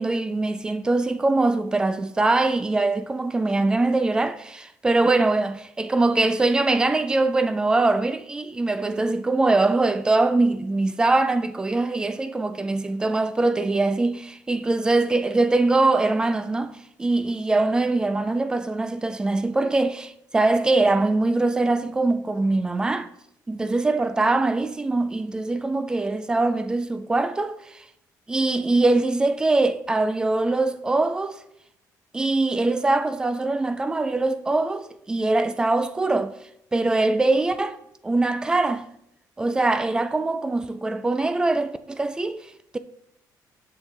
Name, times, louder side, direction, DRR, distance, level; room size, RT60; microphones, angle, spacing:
voice 1, 0.0-23.1 23.5-27.8 28.3-31.4 32.1-36.3 36.7-37.8 38.0-38.9 39.4-42.4, right 2 dB, 10° right, 0.3 m, -22 dB
8.0 x 7.3 x 3.3 m
cardioid pair, 175°, 7 cm